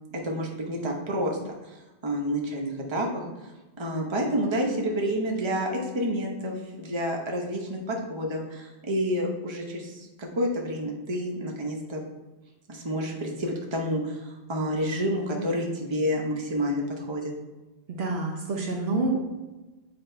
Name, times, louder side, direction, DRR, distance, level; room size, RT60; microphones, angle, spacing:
voice 1, 0.2-1.4 1.6-1.8 2.0-3.5 3.8-12.0 12.7-17.3, equal, 25° right, -1 dB, 0.9 m, -29 dB
voice 2, 17.9-19.3, right 2 dB, 60° right, 0 dB, 1.0 m, -28 dB
7.6 x 2.9 x 4.5 m, 1.1 s
omnidirectional pair, 1.2 m